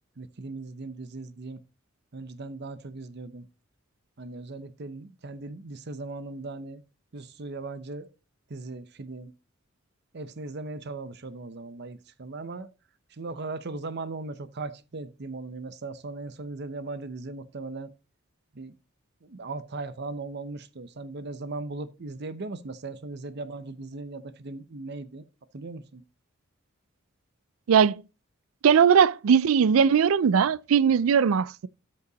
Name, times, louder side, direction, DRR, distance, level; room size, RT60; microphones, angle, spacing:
voice 1, 0.2-1.6 2.1-3.5 4.2-6.8 7.1-8.1 8.5-9.3 10.1-12.7 13.1-17.9 18.5-18.7 19.2-25.2 25.5-26.0, right 3 dB, 55° right, 0.8 m, -38 dB
voice 2, 27.7-28.0 28.6-31.7, right 7 dB, 90° right, 0.4 m, -20 dB
13.0 x 5.5 x 4.0 m
head